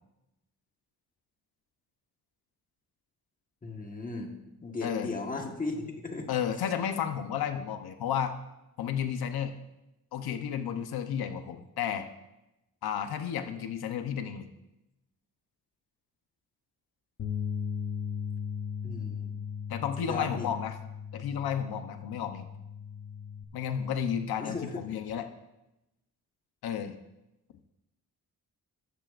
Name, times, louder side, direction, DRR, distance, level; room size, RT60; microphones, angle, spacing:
voice 1, 3.6-4.3 4.6-6.3 18.8-19.3 20.0-20.5 24.4-24.7, left 3 dB, 20° left, 2 dB, 1.4 m, -36 dB
voice 2, 4.8-5.1 6.3-8.3 8.8-9.6 10.1-12.1 12.8-14.5 19.7-20.8 21.1-22.5 23.5-25.3 26.6-27.0, left 8 dB, 85° left, 7 dB, 0.9 m, -32 dB
sound 1, 17.2-23.4, left 7 dB, 45° left, 0.9 m, -37 dB
13.5 x 13.5 x 2.5 m, 0.93 s
wide cardioid pair, 160°, 36 cm